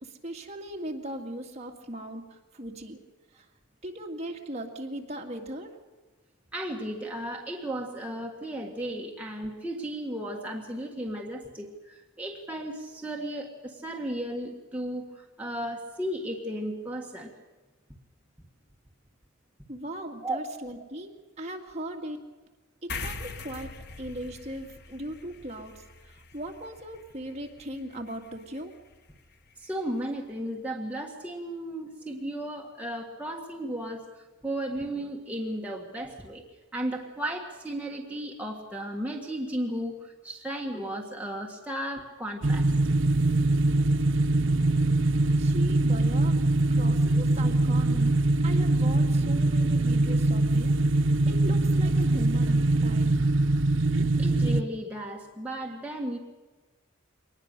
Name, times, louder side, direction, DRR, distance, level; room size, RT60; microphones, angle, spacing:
voice 1, 0.0-3.0 3.3-3.5 3.8-5.7 19.7-22.2 22.8-28.7 45.4-46.4 46.7-50.7 51.0-53.1, right 1 dB, 35° right, 2 dB, 2.1 m, -38 dB
voice 2, 6.5-17.3 20.2-20.4 29.6-36.4 36.7-42.7 45.1-45.3 54.2-56.2, right 1 dB, 5° right, -1 dB, 1.7 m, -35 dB
sound 1, 22.9-29.7, left 3 dB, 55° left, 1.2 m, -43 dB
sound 2, 42.4-54.6, right 2 dB, 65° right, 0.9 m, -23 dB
23.5 x 19.5 x 6.8 m, 1.2 s
head